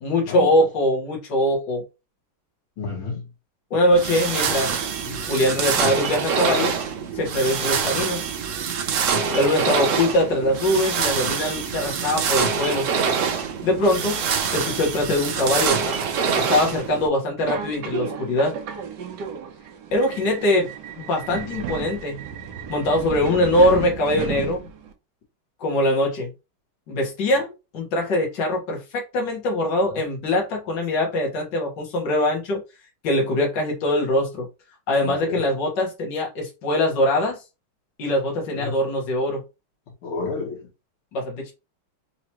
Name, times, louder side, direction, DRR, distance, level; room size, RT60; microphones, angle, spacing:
voice 1, 0.0-1.8 3.7-4.8 5.0-6.7 7.1-8.2 9.3-12.9 13.6-14.2 14.5-15.9 16.4-18.5 19.9-20.7 21.0-22.2 22.7-24.7 25.6-26.3 26.9-32.6 33.0-34.5 34.9-37.4 38.0-39.4 41.1-41.5, left 1 dB, 60° left, 2.1 m, -22 dB
voice 2, 2.8-3.3 35.0-35.5 38.5-38.8 40.0-40.7, left 4 dB, 85° left, 2.4 m, -31 dB
sound 1, 3.9-17.1, right 6 dB, 80° right, 0.7 m, -25 dB
Subway metro underground, 17.4-24.9, right 7 dB, 65° right, 1.3 m, -33 dB
4.8 x 3.0 x 3.0 m
omnidirectional pair, 2.2 m